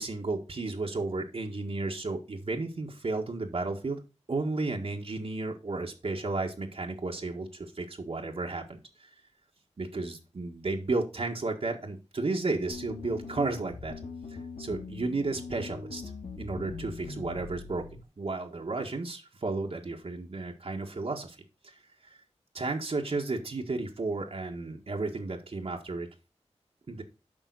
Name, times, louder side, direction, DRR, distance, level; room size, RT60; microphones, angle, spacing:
voice 1, 0.0-4.0 4.3-9.1 9.8-13.9 14.6-16.0 16.4-17.8 18.2-21.4 21.6-21.8 22.5-26.1 26.9-27.0, right 3 dB, 55° right, 1 dB, 1.6 m, -33 dB
sound 1, 12.7-18.0, left 4 dB, 85° left, 1.5 m, -41 dB
9.1 x 5.6 x 4.0 m, 0.31 s
wide cardioid pair, 65°, 12 cm